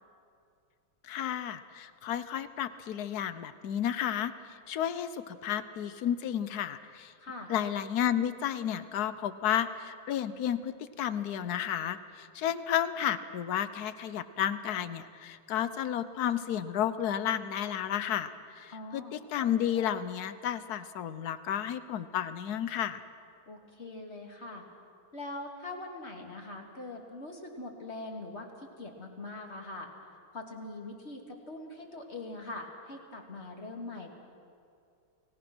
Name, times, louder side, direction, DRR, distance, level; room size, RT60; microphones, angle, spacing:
voice 1, 1.0-7.1 7.5-23.0, left 10 dB, 60° left, 13 dB, 1.2 m, -32 dB
voice 2, 7.2-7.5 18.7-19.2 23.5-24.6 25.1-29.9 30.3-34.1, left 2 dB, 35° left, 2 dB, 2.6 m, -42 dB
29.5 x 18.0 x 6.2 m, 2.5 s
omnidirectional pair, 2.1 m